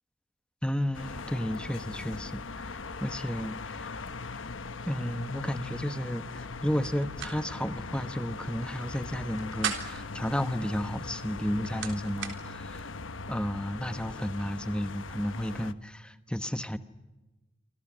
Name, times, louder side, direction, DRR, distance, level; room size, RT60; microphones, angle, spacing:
voice 1, 0.6-4.0 4.9-12.9 13.3-16.8, equal, 5° left, 11 dB, 1.0 m, -33 dB
sound 1, 0.9-15.7, left 3 dB, 90° left, 1.1 m, -40 dB
sound 2, 6.8-7.3 7.7-7.8 9.2-10.1 11.2-12.4, right 7 dB, 80° right, 3.6 m, -36 dB
28.0 x 26.0 x 6.3 m, 1.1 s
head